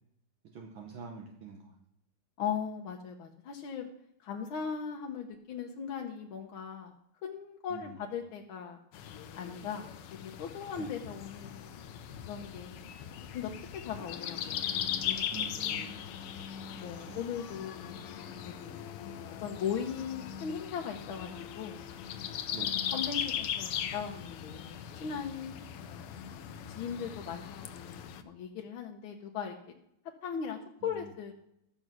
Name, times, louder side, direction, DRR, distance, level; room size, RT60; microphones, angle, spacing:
voice 1, 0.5-1.7 7.7-8.0 10.8-10.9 15.3-16.0 17.1-17.3 22.5-22.8 30.8-31.1, right 5 dB, 65° right, 1 dB, 1.8 m, -45 dB
voice 2, 2.4-3.9 4.2-7.0 7.2-8.8 9.3-9.9 10.2-11.9 12.2-12.9 13.3-15.3 15.6-16.0 16.7-17.9 18.4-18.8 19.4-21.8 22.6-22.7 22.9-26.1 26.7-29.5 30.2-31.3, left 7 dB, 70° left, 1 dB, 1.7 m, -39 dB
sound 1, 8.9-28.2, left 9 dB, 90° left, 1.7 m, -39 dB
12.0 x 6.9 x 6.1 m, 0.77 s
omnidirectional pair, 2.4 m